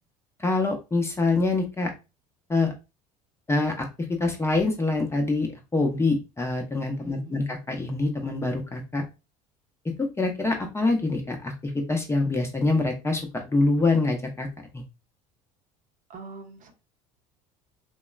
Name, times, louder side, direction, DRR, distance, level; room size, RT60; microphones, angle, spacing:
voice 1, 0.4-1.9 2.5-2.7 3.5-9.0 9.8-14.5 14.7-14.8, left 3 dB, 15° left, 3 dB, 0.6 m, -25 dB
voice 2, 7.0-7.5 16.1-16.7, right 4 dB, 45° right, 4 dB, 0.7 m, -43 dB
3.0 x 2.1 x 2.3 m, 0.27 s
hypercardioid pair, 70°, 19 cm